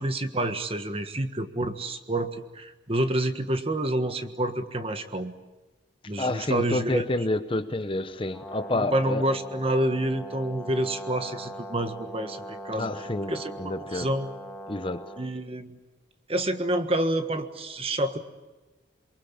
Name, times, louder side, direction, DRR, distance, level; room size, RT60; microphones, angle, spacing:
voice 1, 0.0-5.3 6.1-7.0 8.7-12.9 13.3-14.3 15.2-15.8 16.3-18.2, right 1 dB, 30° right, 1.5 m, -28 dB
voice 2, 6.2-9.3 12.7-14.1 14.7-15.1, left 2 dB, 25° left, 0.8 m, -29 dB
Brass instrument, 8.3-15.3, right 1 dB, 5° left, 2.8 m, -40 dB
28.0 x 23.5 x 8.6 m
head